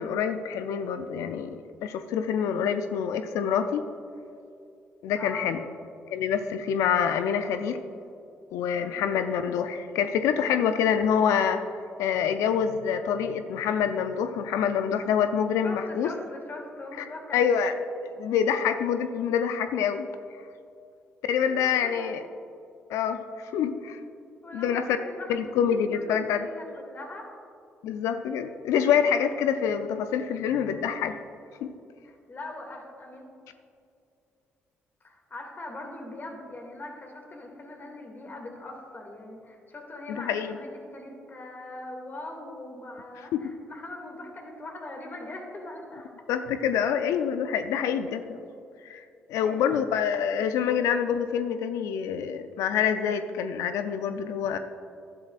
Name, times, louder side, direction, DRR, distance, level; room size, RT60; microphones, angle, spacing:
voice 1, 0.0-3.8 5.0-5.6 6.1-7.8 8.5-11.7 12.0-16.1 17.3-17.7 18.2-20.1 21.3-22.2 22.9-24.0 24.5-24.9 25.3-26.5 27.8-31.2 31.6-31.7 40.1-40.6 43.3-43.4 46.3-48.4 48.8-49.0 49.3-54.6, left 8 dB, 75° left, 9 dB, 0.4 m, -26 dB
voice 2, 5.2-5.5 8.8-9.0 15.6-17.4 21.4-22.1 24.4-27.3 32.0-33.3 35.0-46.1 49.3-49.8, left 2 dB, 40° left, 2 dB, 2.3 m, -41 dB
11.5 x 11.5 x 2.5 m, 2.5 s
hypercardioid pair, 50°, 5 cm